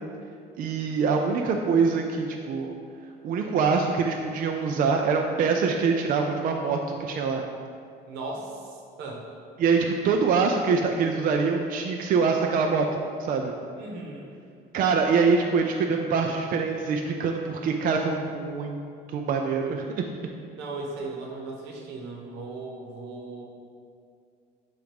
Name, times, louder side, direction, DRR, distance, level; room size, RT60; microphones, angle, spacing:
voice 1, 0.6-2.7 3.2-7.4 9.6-13.5 14.7-18.8 19.1-20.0, right 5 dB, 55° right, 2 dB, 0.4 m, -24 dB
voice 2, 8.1-9.3 13.8-14.3 20.5-23.4, right 3 dB, 90° right, 0 dB, 1.0 m, -37 dB
7.5 x 2.6 x 5.3 m, 2.3 s
cardioid pair, 110°, 17 cm